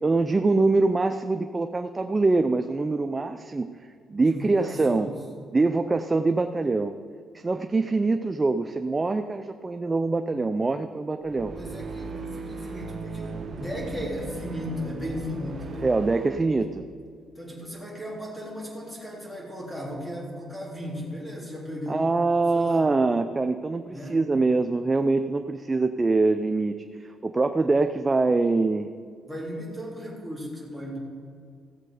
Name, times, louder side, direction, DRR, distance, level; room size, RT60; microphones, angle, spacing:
voice 1, 0.0-3.7 4.1-5.1 5.5-6.9 7.3-11.5 15.8-16.8 21.9-28.9, right 3 dB, 25° right, 7 dB, 0.5 m, -24 dB
voice 2, 4.2-5.1 11.5-15.9 17.4-22.1 22.5-22.9 23.9-24.2 29.3-31.0, equal, 5° left, -4 dB, 3.5 m, -36 dB
sound 1, 11.2-16.5, right 3 dB, 50° right, 1.2 m, -37 dB
15.5 x 7.6 x 4.9 m, 2.2 s
cardioid pair, 90°, 0 cm